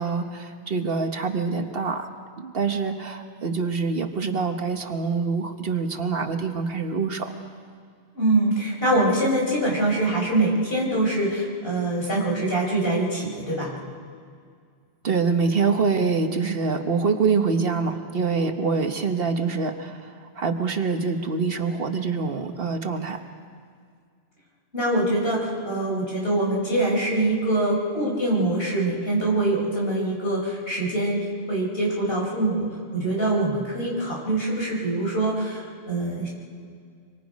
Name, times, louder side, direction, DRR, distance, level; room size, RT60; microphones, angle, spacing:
voice 1, 0.0-2.1 2.4-7.3 15.0-23.2, right 4 dB, 60° right, 6 dB, 1.3 m, -25 dB
voice 2, 8.1-13.8 24.7-32.7 32.9-36.3, right 2 dB, 60° left, -3 dB, 5.2 m, -24 dB
25.5 x 24.0 x 5.2 m, 2.1 s
omnidirectional pair, 1.1 m